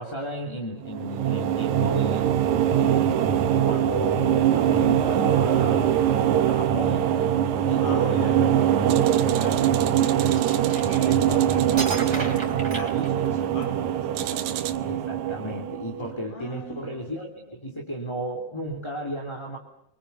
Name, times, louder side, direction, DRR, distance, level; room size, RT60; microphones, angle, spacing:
voice 1, 0.0-2.3 2.7-6.0 6.4-7.1 7.7-8.5 14.8-19.6, right 1 dB, 10° left, -2 dB, 2.2 m, -33 dB
sound 1, 0.8-16.1, right 10 dB, 65° right, 2.1 m, -22 dB
voice 2, 7.8-8.4 9.3-10.3 10.7-14.4 16.3-17.6, left 1 dB, 70° left, 4 dB, 8.5 m, -40 dB
sound 2, 8.9-12.2 14.2-14.8, right 13 dB, 90° right, 3.1 m, -36 dB
sound 3, 10.2-11.3 11.8-13.6, right 3 dB, 25° right, 4.6 m, -34 dB
28.0 x 24.5 x 7.0 m, 0.80 s
omnidirectional pair, 4.5 m